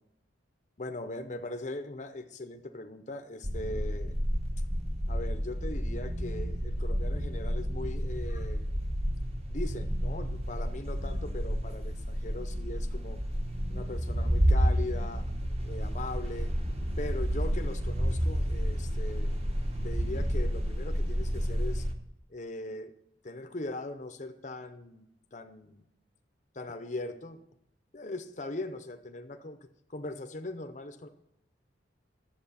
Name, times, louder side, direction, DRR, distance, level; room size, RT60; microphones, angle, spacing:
voice 1, 0.8-4.2 5.1-8.6 9.5-13.2 13.7-15.3 15.7-16.5 17.0-19.3 19.8-21.9 22.3-22.9 23.2-25.8 26.5-27.4 27.9-29.6 29.9-31.1, left 2 dB, 40° left, 6 dB, 0.7 m, -40 dB
sound 1, 3.4-21.9, equal, 30° right, 1.2 m, -30 dB
10.5 x 7.4 x 5.8 m, 0.78 s
head